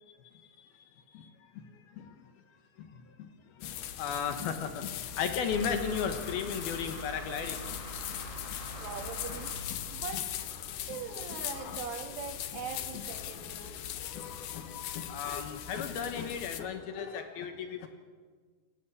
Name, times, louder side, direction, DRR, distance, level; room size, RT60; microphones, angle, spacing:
voice 1, 0.2-0.7 1.1-1.7 1.9-2.1 2.8-3.3 3.5-8.6 9.7-9.8 10.7-10.8 13.6-17.9, left 7 dB, 70° left, 7 dB, 2.6 m, -36 dB
sound 1, 3.6-16.6, left 11 dB, 90° left, 1.8 m, -40 dB
sound 2, 5.5-10.4, left 1 dB, 30° left, 5.3 m, -43 dB
voice 2, 8.8-9.6 9.9-10.3 10.9-13.8, right 7 dB, 85° right, 5 dB, 4.7 m, -41 dB
28.0 x 14.0 x 8.4 m, 1.5 s
omnidirectional pair, 5.4 m